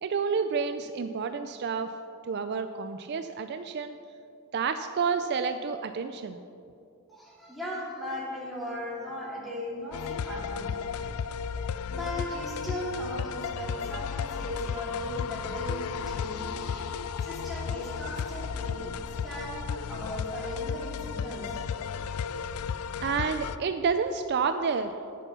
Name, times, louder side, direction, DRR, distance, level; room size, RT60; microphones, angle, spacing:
voice 1, 0.0-1.9 2.3-4.0 4.5-6.4 23.0-24.9, right 5 dB, 50° right, 8 dB, 0.4 m, -29 dB
voice 2, 7.1-10.7 11.9-18.9 19.2-21.6, left 1 dB, ahead, -7 dB, 2.7 m, -37 dB
sound 1, 9.9-23.6, left 6 dB, 80° left, 0.4 m, -34 dB
10.5 x 8.4 x 5.6 m, 2.5 s
head